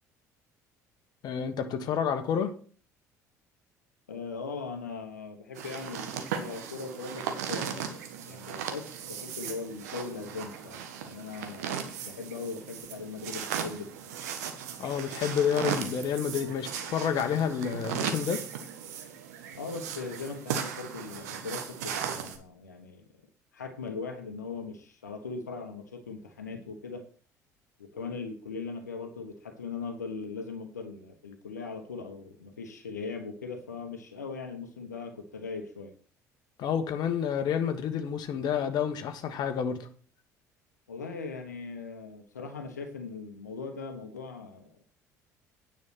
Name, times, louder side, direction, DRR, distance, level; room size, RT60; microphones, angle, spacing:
voice 1, 1.2-2.5 14.8-18.4 36.6-39.9, left 8 dB, 50° left, 1.3 m, -29 dB
voice 2, 4.1-8.0 8.3-13.9 19.5-23.0 23.5-27.0 27.8-35.9 40.9-44.8, left 4 dB, 85° left, 1.2 m, -39 dB
sound 1, 5.6-22.4, right 8 dB, 70° right, 1.4 m, -37 dB
9.6 x 5.8 x 6.0 m
figure-of-eight pair, 55°, 9 cm